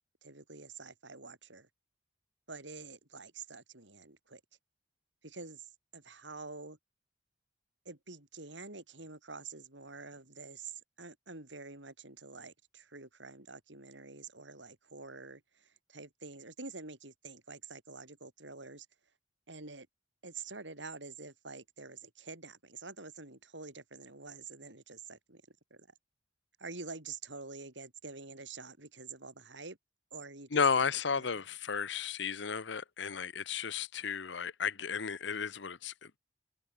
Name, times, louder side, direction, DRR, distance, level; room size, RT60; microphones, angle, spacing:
voice 1, 0.2-1.7 2.5-4.4 5.2-5.7 5.9-6.8 7.8-18.9 19.5-19.9 20.2-25.4 25.7-25.9 26.6-29.8 30.1-30.8 31.2-31.3, right 4 dB, 75° right, 5.1 m, -47 dB
voice 2, 30.5-36.2, left 6 dB, 70° left, 0.9 m, -33 dB
head